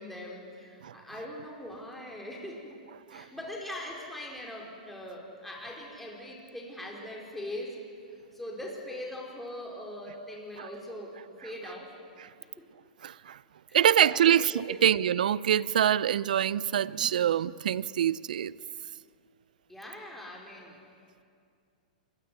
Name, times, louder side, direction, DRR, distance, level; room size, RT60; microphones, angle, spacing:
voice 1, 0.0-2.7 3.1-7.8 8.3-11.9 12.6-12.7 13.7-13.8 14.1-14.8 19.7-20.8, left 1 dB, 5° left, 5.1 m, -41 dB
voice 2, 13.0-13.4 13.7-18.5, right 10 dB, 70° right, 0.7 m, -25 dB
25.5 x 22.0 x 9.9 m
hypercardioid pair, 120°, 5 cm